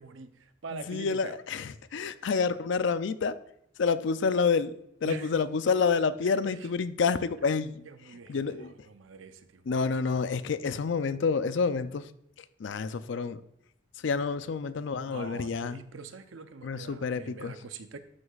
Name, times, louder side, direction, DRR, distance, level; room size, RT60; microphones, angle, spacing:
voice 1, 0.0-1.4 5.0-5.3 6.3-6.7 7.9-9.9 10.2-10.5 15.1-18.0, right 4 dB, 75° right, 9 dB, 0.6 m, -44 dB
voice 2, 0.7-3.3 3.8-4.7 5.0-7.8 8.3-8.7 9.7-12.1 12.6-13.4 14.0-15.8 16.6-17.5, left 5 dB, 65° left, 13 dB, 0.4 m, -28 dB
12.5 x 6.5 x 2.4 m, 0.77 s
head